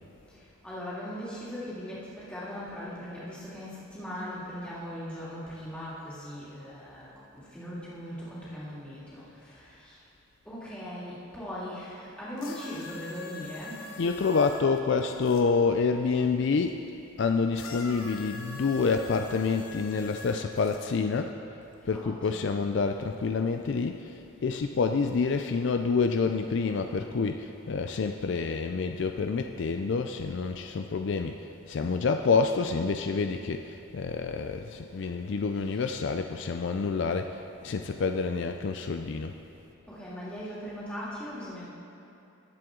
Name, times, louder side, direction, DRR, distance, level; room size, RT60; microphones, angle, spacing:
voice 1, 0.3-10.0 10.4-13.9 21.9-22.5 34.9-35.1 35.7-35.9 39.9-41.6, equal, 5° left, -9 dB, 2.6 m, -39 dB
sound 1, 12.4-15.4 17.5-20.8 21.7-21.8, left 4 dB, 85° left, 1.1 m, -44 dB
voice 2, 14.0-16.8 17.2-21.4 21.8-39.3, left 4 dB, 55° left, 6 dB, 0.4 m, -28 dB
19.5 x 7.6 x 3.8 m, 2.8 s
head